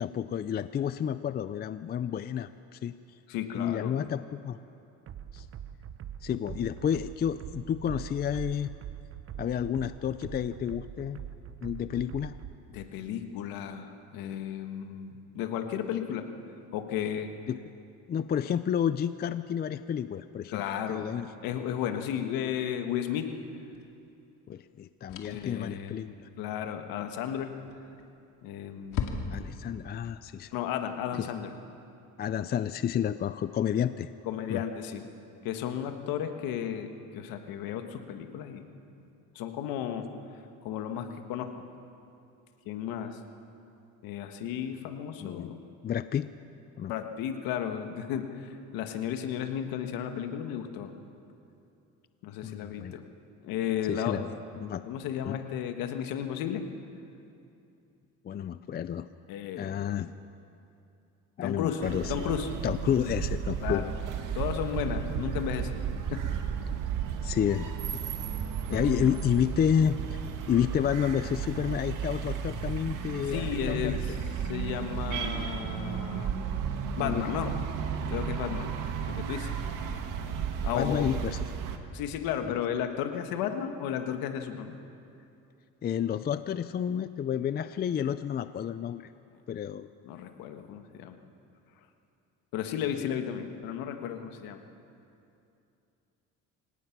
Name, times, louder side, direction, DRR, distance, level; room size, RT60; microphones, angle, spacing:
voice 1, 0.0-3.2 3.5-4.6 5.3-5.5 6.2-8.7 9.4-11.2 11.6-12.4 17.5-17.6 18.1-20.6 20.9-21.3 24.5-26.3 29.3-30.5 31.1-31.3 32.2-34.1 34.5-34.6 45.2-45.5 45.8-46.3 46.8-46.9 52.4-53.0 53.9-54.2 54.6-54.8 55.2-55.4 58.2-59.1 59.6-60.1 61.4-62.1 62.6-63.9 67.2-67.7 68.7-70.2 70.5-74.2 77.0-77.5 79.9-80.0 80.7-81.5 82.4-82.5 85.8-89.0 89.5-89.9, left 9 dB, 30° left, 12 dB, 0.4 m, -30 dB
voice 2, 3.3-4.0 12.7-16.3 16.7-17.3 20.5-21.1 21.4-23.3 25.2-25.9 26.4-27.5 28.4-29.1 30.5-31.5 34.3-35.0 35.4-36.9 37.1-38.6 39.4-40.1 40.6-41.5 42.7-43.2 44.0-45.6 46.9-50.9 52.2-53.0 53.4-54.2 54.9-56.6 59.3-59.8 61.4-61.8 62.1-62.5 63.6-63.9 64.3-65.7 66.1-66.3 68.7-69.2 73.3-74.2 74.5-76.4 77.0-77.5 78.1-78.7 79.1-79.5 80.6-81.2 81.9-84.8 90.0-91.2 92.5-94.6, left 9 dB, 85° left, 6 dB, 1.6 m, -34 dB
sound 1, 5.1-12.6, right 9 dB, 40° right, 0.9 m, -43 dB
sound 2, 23.7-23.9 25.1-25.6 27.7-28.1 28.4-28.5 28.9-29.7, left 6 dB, 65° left, 2.2 m, -35 dB
sound 3, 61.8-81.8, right 7 dB, 65° right, 1.7 m, -34 dB
26.5 x 17.5 x 6.0 m, 2.7 s
cardioid pair, 130°, 34 cm